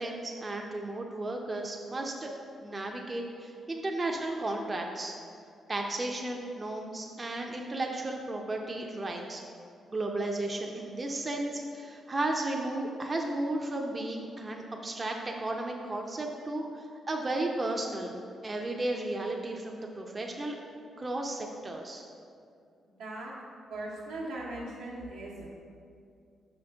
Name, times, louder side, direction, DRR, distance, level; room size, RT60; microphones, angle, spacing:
voice 1, 0.0-2.3 2.6-5.1 5.7-9.4 9.9-18.1 18.4-20.5 21.0-22.0, right 2 dB, 35° right, 1 dB, 0.6 m, -34 dB
voice 2, 23.0-23.3 23.7-25.5, right 2 dB, 85° right, -5 dB, 1.1 m, -39 dB
5.5 x 5.1 x 3.5 m, 2.4 s
supercardioid pair, 50°, 0 cm